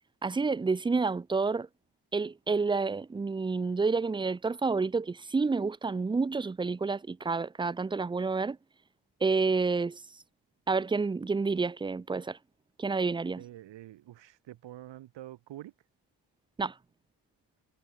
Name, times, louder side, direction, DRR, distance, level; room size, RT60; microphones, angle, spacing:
voice 1, 0.2-1.7 2.1-8.6 9.2-10.0 10.7-12.4 12.8-13.4 16.6-16.7, right 4 dB, 10° right, 0.3 m, -29 dB
voice 2, 13.4-15.7, right 13 dB, 75° right, 0.9 m, -46 dB
cardioid pair, 85°, 44 cm